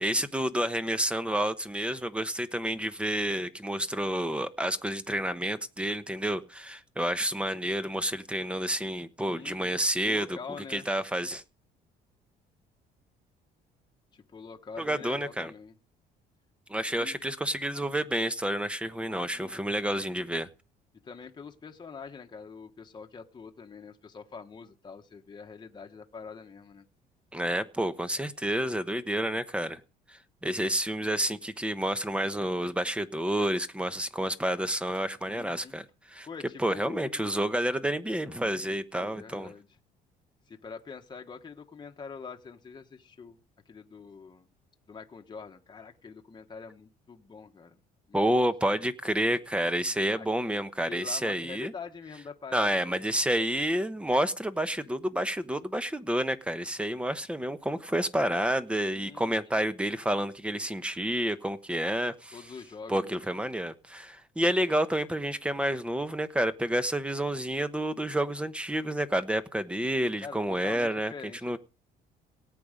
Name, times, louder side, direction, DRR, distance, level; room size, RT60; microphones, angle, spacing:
voice 1, 0.0-10.3 10.7-11.4 14.8-15.5 16.7-20.5 27.3-29.8 30.1-36.3 36.6-39.5 48.1-51.7 52.5-62.4 62.9-71.1 71.4-71.6, right 1 dB, 5° right, 1.1 m, -29 dB
voice 2, 9.3-9.8 10.0-10.9 14.1-15.7 16.9-17.2 19.3-19.7 21.0-26.8 35.3-35.7 36.3-37.3 38.9-39.7 40.5-43.4 43.7-44.5 44.9-47.8 48.1-48.3 50.1-50.3 50.9-53.1 58.9-59.4 62.3-63.5 70.2-71.6, left 5 dB, 25° left, 1.3 m, -45 dB
17.5 x 8.7 x 5.2 m
cardioid pair, 110°, 17 cm